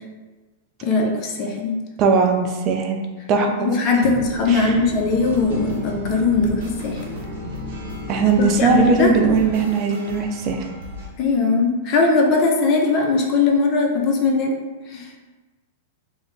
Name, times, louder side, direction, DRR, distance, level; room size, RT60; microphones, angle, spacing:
voice 1, 0.8-1.8 3.6-7.0 8.6-9.1 11.2-14.6 14.9-15.1, left 3 dB, 40° left, 1 dB, 0.5 m, -20 dB
voice 2, 2.0-3.0 3.3-3.7 4.5-4.7 8.1-10.6, right 5 dB, 40° right, 3 dB, 0.5 m, -19 dB
sound 1, 4.2-9.6, left 1 dB, 10° right, 1.0 m, -33 dB
sound 2, 5.2-11.1, left 1 dB, 65° right, 0.9 m, -38 dB
2.4 x 2.1 x 3.7 m, 1.3 s
hypercardioid pair, 115°, 0 cm